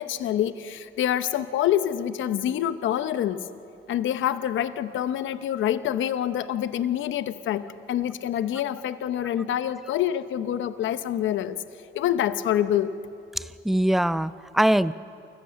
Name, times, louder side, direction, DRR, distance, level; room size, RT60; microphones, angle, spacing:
voice 1, 0.0-3.5 3.9-11.6 11.9-12.9, left 11 dB, 75° left, 12 dB, 0.9 m, -26 dB
voice 2, 13.4-14.9, right 1 dB, ahead, 16 dB, 0.5 m, -22 dB
28.5 x 14.5 x 6.5 m, 2.5 s
cardioid pair, 90°, 20 cm